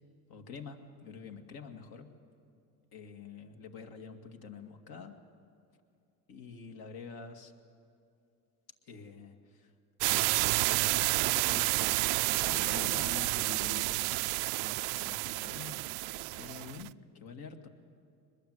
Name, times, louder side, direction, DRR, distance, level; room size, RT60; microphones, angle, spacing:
voice 1, 0.3-2.1 2.9-5.2 6.3-7.5 8.9-9.7 10.1-10.4 10.8-11.9 12.4-14.0 14.6-15.8 16.3-17.7, left 6 dB, 55° left, 5 dB, 2.3 m, -47 dB
sound 1, 10.0-16.9, right 22 dB, 60° right, 0.5 m, -30 dB
23.5 x 21.0 x 8.1 m, 2.5 s
supercardioid pair, 110°, 44 cm